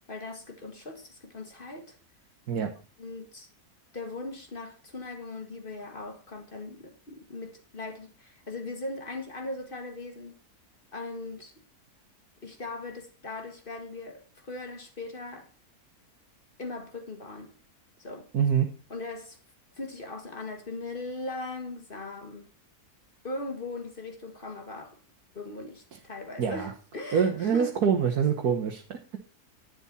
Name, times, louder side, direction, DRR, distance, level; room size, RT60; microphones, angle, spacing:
voice 1, 0.1-2.0 3.0-3.5 3.9-10.4 10.9-11.5 12.4-15.5 16.6-17.5 18.0-18.3 18.9-19.4 19.8-22.5 23.2-25.0 25.3-27.7, left 2 dB, 35° left, 2.2 m, -39 dB
voice 2, 18.3-18.7 26.4-26.7 27.1-29.2, right 7 dB, 80° right, 1.7 m, -25 dB
11.0 x 9.7 x 4.2 m
omnidirectional pair, 1.6 m